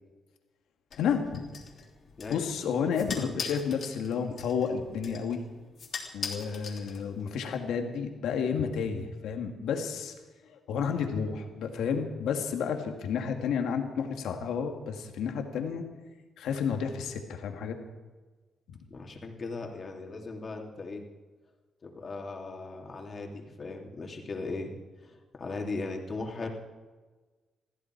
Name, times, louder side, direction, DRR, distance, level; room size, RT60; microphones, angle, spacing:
sound 1, 0.9-7.4, left 5 dB, 55° left, 3.3 m, -42 dB
voice 1, 1.0-1.4 2.3-5.4 6.1-10.1 10.5-15.8 16.4-17.8 18.7-18.8, left 6 dB, 85° left, 4 dB, 2.1 m, -31 dB
voice 2, 18.9-21.0 21.8-24.8 25.0-26.5, left 3 dB, 40° left, 2 dB, 2.9 m, -38 dB
21.5 x 14.5 x 4.7 m, 1.3 s
cardioid pair, 95°, 0 cm